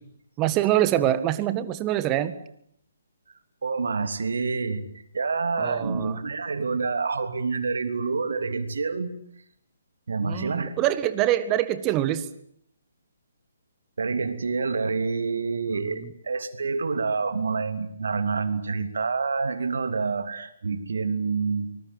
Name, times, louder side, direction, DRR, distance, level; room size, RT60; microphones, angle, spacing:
voice 1, 0.4-2.3 5.6-6.2 10.2-12.3 15.7-16.1, right 13 dB, 20° right, 13 dB, 1.7 m, -25 dB
voice 2, 3.6-4.8 5.1-9.1 10.1-10.7 14.0-21.7, right 4 dB, 60° right, 9 dB, 3.1 m, -27 dB
25.0 x 20.5 x 9.3 m, 0.71 s
figure-of-eight pair, 135°, 0 cm